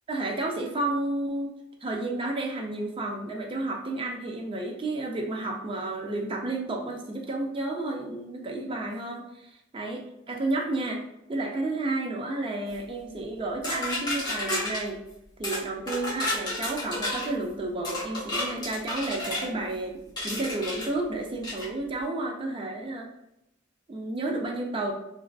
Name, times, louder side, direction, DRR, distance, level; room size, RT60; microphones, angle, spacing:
voice 1, 0.1-1.5 1.8-9.5 9.7-11.0 11.3-15.0 15.4-20.0 20.2-23.1 23.9-24.9, right 2 dB, 25° right, 1 dB, 0.4 m, -31 dB
sound 1, 13.6-14.8 15.4-15.6 15.9-17.3 17.8-19.5 20.2-20.9 21.4-21.7, left 1 dB, 20° left, 0.9 m, -31 dB
2.4 x 2.3 x 2.2 m, 0.84 s
head